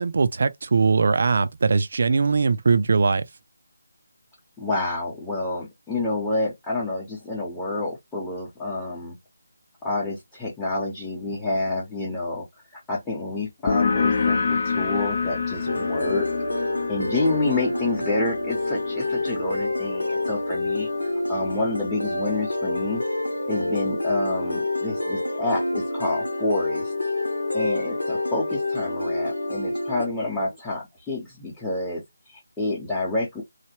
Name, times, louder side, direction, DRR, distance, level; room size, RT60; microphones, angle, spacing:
voice 1, 0.0-3.2, right 4 dB, 45° right, 0.4 m, -21 dB
voice 2, 4.6-9.2 9.8-12.4 12.7-16.3 16.9-23.0 23.5-26.9 27.5-33.4, left 2 dB, 5° left, 0.8 m, -28 dB
sound 1, 13.7-20.9, left 5 dB, 40° left, 0.6 m, -28 dB
sound 2, 15.7-30.1, left 2 dB, 75° left, 0.9 m, -27 dB
3.2 x 2.3 x 2.9 m
figure-of-eight pair, 155°, 0 cm